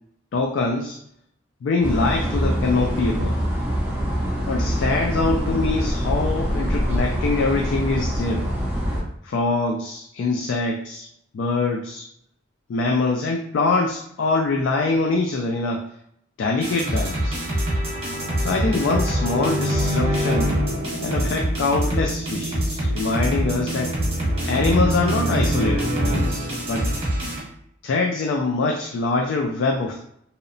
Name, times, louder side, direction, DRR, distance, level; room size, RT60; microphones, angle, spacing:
voice 1, 0.3-1.0 1.6-3.4 4.5-8.5 9.2-11.1 11.3-12.0 12.7-15.8 16.4-17.4 18.4-20.5 21.0-24.0 24.4-26.9 27.8-30.0, left 3 dB, 75° left, 1 dB, 0.3 m, -24 dB
sound 1, 1.8-9.0, equal, 10° right, 0.5 m, -24 dB
sound 2, 16.6-27.4, equal, 30° right, 0.9 m, -24 dB
2.7 x 2.0 x 2.6 m, 0.71 s
head